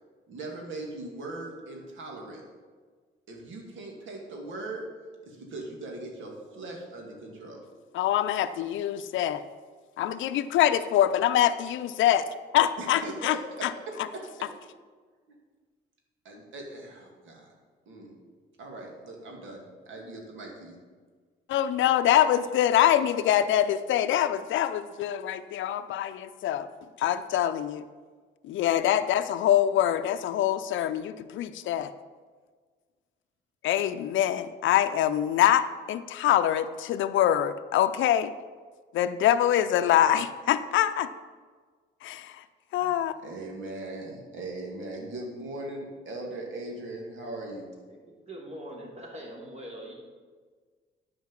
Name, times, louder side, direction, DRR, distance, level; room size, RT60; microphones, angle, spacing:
voice 1, 0.3-2.4 3.3-4.9 5.2-7.6 12.8-14.5 15.3-15.4 16.2-17.5 17.9-18.1 18.6-20.8 42.8-47.7, right 2 dB, 75° right, 0 dB, 2.3 m, -40 dB
voice 2, 7.9-9.4 10.0-12.2 12.5-13.4 13.6-13.7 21.5-26.7 27.0-27.8 28.5-31.9 33.6-38.3 38.9-41.1 42.0-42.4 42.7-43.1, left 11 dB, 75° left, 11 dB, 0.5 m, -24 dB
voice 3, 48.3-49.9, equal, 35° right, -2 dB, 3.0 m, -42 dB
9.4 x 5.2 x 7.3 m, 1.5 s
cardioid pair, 90°, 20 cm